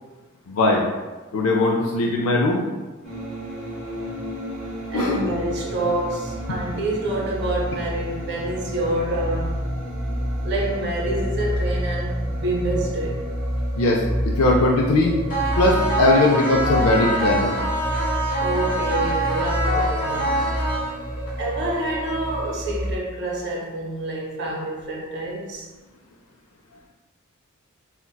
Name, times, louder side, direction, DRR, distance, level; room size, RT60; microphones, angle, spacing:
voice 1, 0.5-0.8 1.3-2.6 4.9-5.3 13.8-15.1 15.6-17.5, left 2 dB, 75° left, -1 dB, 0.4 m, -19 dB
sound 1, 3.0-23.0, equal, ahead, 1.3 m, -28 dB
voice 2, 4.9-9.6 10.4-13.2 18.4-20.5 21.4-25.7, right 1 dB, 55° right, -2 dB, 0.6 m, -27 dB
sound 2, 15.3-21.3, right 1 dB, 40° left, 0.8 m, -25 dB
3.9 x 2.1 x 2.2 m, 1.2 s
head